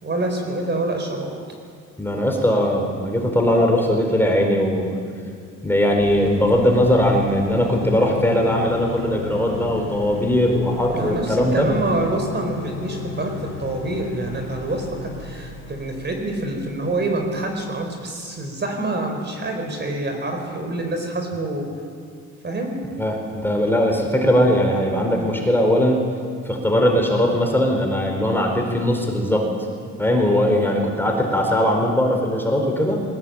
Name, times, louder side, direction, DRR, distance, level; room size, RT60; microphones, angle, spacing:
voice 1, 0.0-1.3 10.9-21.7 22.4-22.7, right 2 dB, 35° right, 3 dB, 4.5 m, -26 dB
voice 2, 2.0-5.0 5.6-11.7 23.0-26.0 26.5-29.5 30.0-33.0, equal, 5° left, 1 dB, 4.5 m, -19 dB
sound 1, 6.0-17.8, left 5 dB, 45° left, 4.7 m, -36 dB
21.0 x 18.0 x 8.9 m, 2.1 s
cardioid pair, 90°, 30 cm